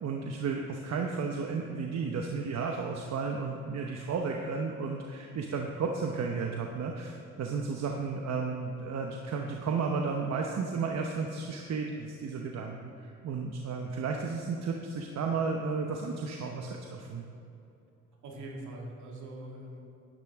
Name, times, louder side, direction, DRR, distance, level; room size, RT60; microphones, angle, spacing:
voice 1, 0.0-17.2, right 5 dB, 60° right, 2 dB, 0.9 m, -33 dB
voice 2, 18.2-19.8, right 2 dB, 75° right, -1 dB, 2.2 m, -44 dB
11.5 x 10.0 x 3.5 m, 2.8 s
cardioid pair, 90°, 30 cm